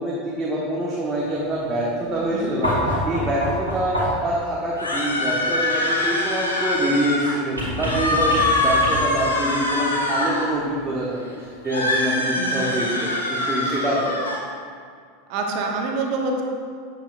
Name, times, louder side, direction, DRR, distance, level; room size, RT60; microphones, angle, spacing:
voice 1, 0.0-14.3, right 1 dB, 20° right, -5 dB, 1.2 m, -25 dB
sound 1, 2.6-4.4 7.6-9.3 10.8-10.9, equal, 90° right, 1.9 m, -26 dB
sound 2, 4.8-7.4 7.7-10.5 11.7-14.4, left 2 dB, 85° left, 1.0 m, -23 dB
voice 2, 12.3-12.7 15.3-16.4, right 3 dB, 50° right, 1 dB, 1.0 m, -26 dB
9.0 x 7.1 x 2.5 m, 2.1 s
figure-of-eight pair, 85°, 0 cm